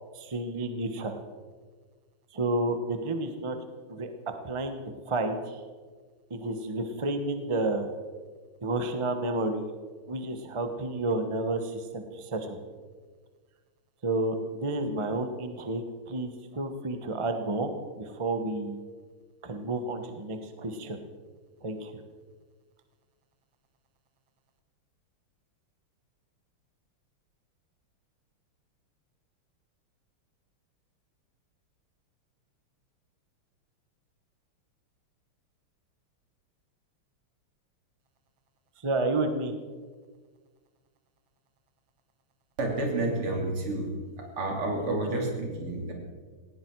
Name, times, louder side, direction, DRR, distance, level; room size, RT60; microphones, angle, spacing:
voice 1, 0.1-1.2 2.3-3.6 3.9-5.6 6.3-7.9 8.6-9.7 10.1-12.6 14.0-18.8 19.4-21.0 21.6-22.0 38.8-39.5 44.9-45.0, right 2 dB, 20° right, 7 dB, 0.9 m, -31 dB
voice 2, 42.6-45.9, right 2 dB, 80° right, 1 dB, 4.0 m, -30 dB
18.5 x 16.0 x 4.7 m, 1.5 s
omnidirectional pair, 2.4 m